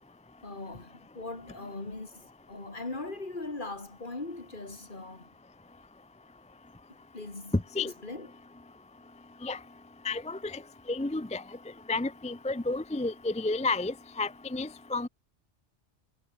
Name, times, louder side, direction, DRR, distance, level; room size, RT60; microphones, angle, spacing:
voice 1, 0.4-2.2 2.5-5.3 7.1-7.5 8.0-8.3, left 2 dB, 45° left, 2.9 m, -40 dB
voice 2, 7.5-7.9 9.4-9.6 10.0-10.6 10.9-11.4 11.9-15.1, left 3 dB, 10° left, 0.4 m, -31 dB
omnidirectional pair, 1.2 m